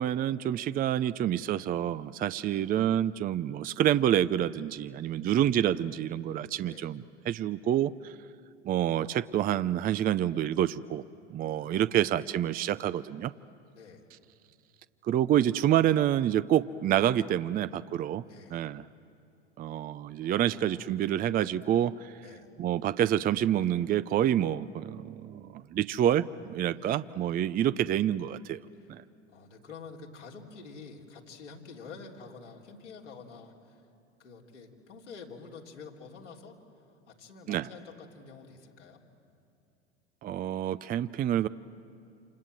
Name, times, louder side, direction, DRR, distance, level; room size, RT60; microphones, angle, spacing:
voice 1, 0.0-8.2 8.6-11.0 11.3-13.3 15.0-18.2 18.5-18.9 19.6-22.1 22.6-28.6 28.9-29.0 37.5-37.7 40.2-41.5, right 11 dB, 25° right, 15 dB, 0.5 m, -28 dB
voice 2, 1.0-1.4 2.4-2.7 5.2-5.7 6.6-6.9 11.4-12.1 13.7-14.1 17.4-17.8 18.2-18.6 20.2-20.9 22.2-22.5 26.7-27.2 28.8-28.9 29.3-33.8 34.2-39.0, left 4 dB, 85° left, -1 dB, 3.4 m, -49 dB
28.0 x 27.5 x 7.7 m, 2.7 s
hypercardioid pair, 85°, 35 cm